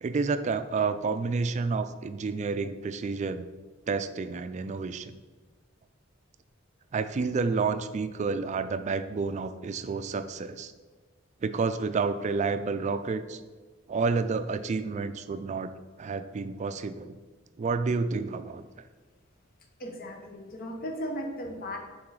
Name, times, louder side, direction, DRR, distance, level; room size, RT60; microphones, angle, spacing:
voice 1, 0.0-3.5 3.9-5.2 6.9-10.7 11.4-13.4 13.9-15.7 16.0-17.2 17.6-18.7, right 4 dB, 35° right, 11 dB, 0.3 m, -30 dB
voice 2, 19.8-21.8, equal, 50° left, 3 dB, 0.8 m, -36 dB
6.0 x 3.9 x 4.8 m, 1.4 s
head